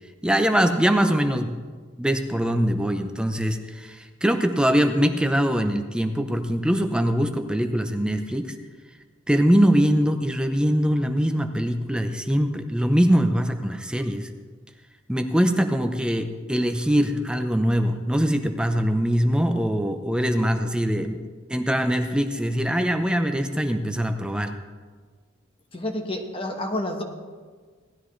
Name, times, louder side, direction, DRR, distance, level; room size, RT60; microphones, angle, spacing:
voice 1, 0.2-1.6 2.0-8.5 9.3-14.3 15.1-21.2 21.5-24.5, equal, 5° right, 6 dB, 0.7 m, -22 dB
voice 2, 25.7-27.0, left 1 dB, 30° left, 3 dB, 1.3 m, -29 dB
18.0 x 13.0 x 3.2 m, 1.5 s
head